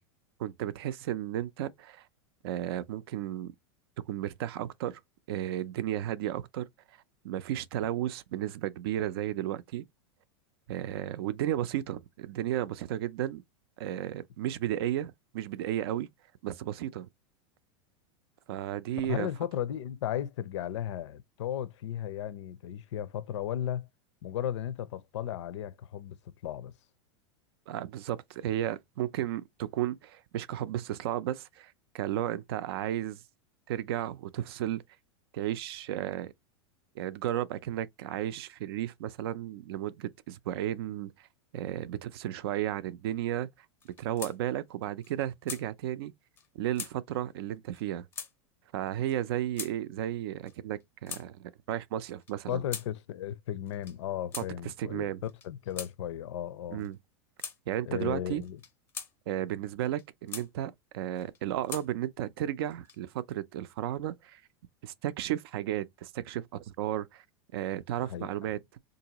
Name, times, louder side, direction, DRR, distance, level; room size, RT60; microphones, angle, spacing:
voice 1, 0.4-2.0 2.4-3.5 4.1-5.0 5.3-6.7 7.2-9.8 10.7-13.4 13.8-16.1 16.4-17.1 18.5-19.3 27.7-33.2 33.7-34.8 35.3-36.3 37.0-41.1 41.5-43.5 44.0-46.1 46.6-48.1 48.7-52.6 54.8-55.2 56.7-57.0 57.7-58.4 59.3-64.4 64.8-67.2 67.5-68.6, right 12 dB, 55° right, 0.4 m, -33 dB
voice 2, 19.0-23.9 24.2-26.7 52.5-56.9 57.8-58.6 68.1-68.5, left 10 dB, 75° left, 0.6 m, -35 dB
sound 1, 43.8-44.4 44.7-44.8 45.0-45.6 46.4-46.5 46.7-46.9 47.7-47.9 48.1-48.3 49.1-49.2 49.6-49.7 50.5-51.3 52.0-52.9 53.7-54.0 54.3-54.5 55.2-55.9 56.8-56.9 57.4-57.6 58.4-59.1 59.8-60.5 61.1-61.9 62.6-63.2, left 6 dB, 15° left, 0.5 m, -41 dB
3.8 x 2.6 x 2.8 m
supercardioid pair, 170°, 15 cm